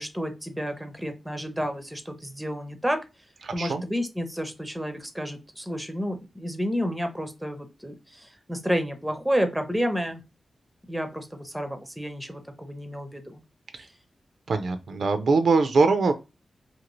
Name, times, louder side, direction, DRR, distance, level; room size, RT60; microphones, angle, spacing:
voice 1, 0.0-3.0 3.5-10.2 10.9-13.4, equal, 5° right, 6 dB, 0.5 m, -30 dB
voice 2, 3.4-3.8 14.5-16.1, right 4 dB, 70° right, 8 dB, 0.4 m, -22 dB
2.8 x 2.6 x 3.0 m, 0.27 s
wide cardioid pair, 115°, 0 cm